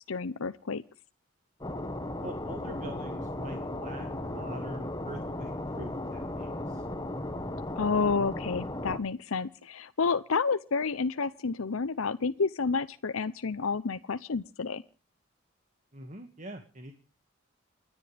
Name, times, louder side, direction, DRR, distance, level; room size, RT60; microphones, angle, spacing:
voice 1, 0.1-0.8 7.8-14.8, left 4 dB, 80° left, 13 dB, 0.7 m, -30 dB
sound 1, 1.6-9.0, left 1 dB, 20° left, 1.3 m, -36 dB
voice 2, 2.2-6.9 15.9-16.9, right 1 dB, 35° right, 6 dB, 1.9 m, -44 dB
28.5 x 10.5 x 3.4 m, 0.36 s
head